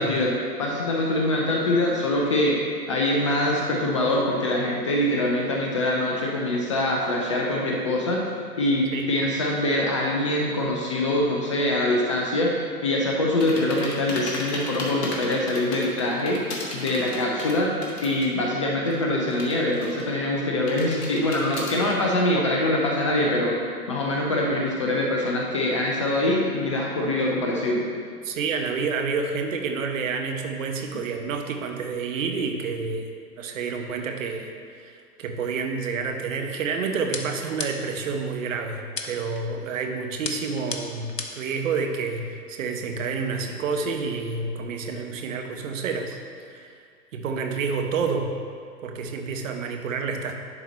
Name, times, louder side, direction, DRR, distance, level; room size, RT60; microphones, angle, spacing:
voice 1, 0.0-2.6 2.9-8.2 8.6-16.4 16.7-17.7 18.0-23.6 23.9-27.8, left 1 dB, 20° left, -2 dB, 0.4 m, -24 dB
sound 1, 13.4-18.4 18.7-20.3 20.7-21.9, left 2 dB, 40° left, 1.5 m, -34 dB
voice 2, 28.2-34.5 34.8-46.2 46.5-46.8 47.1-48.3 48.8-50.3, right 5 dB, 55° right, 4 dB, 1.0 m, -29 dB
sound 2, 37.1-38.0 39.0-39.4 40.2-41.5, left 4 dB, 85° left, 0.9 m, -34 dB
10.5 x 4.0 x 4.1 m, 2.1 s
figure-of-eight pair, 115°, 48 cm